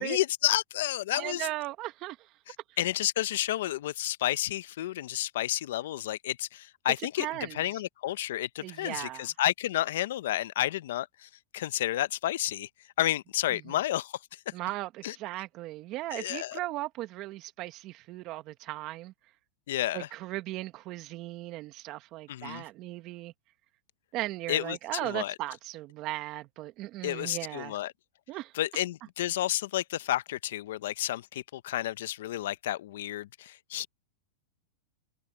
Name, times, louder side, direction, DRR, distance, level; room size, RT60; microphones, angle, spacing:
voice 1, 0.0-1.5 2.5-12.7 13.0-14.1 15.0-15.2 16.1-16.6 19.7-20.1 22.3-22.6 24.5-25.3 27.0-27.9 28.5-33.9, left 13 dB, 70° left, 0.7 m, -31 dB
voice 2, 1.1-2.3 7.2-7.6 8.6-9.3 13.5-13.8 14.5-19.1 19.9-23.3 24.1-27.8 28.3-28.5, right 17 dB, 40° right, 1.6 m, -37 dB
supercardioid pair, 140°, 0 cm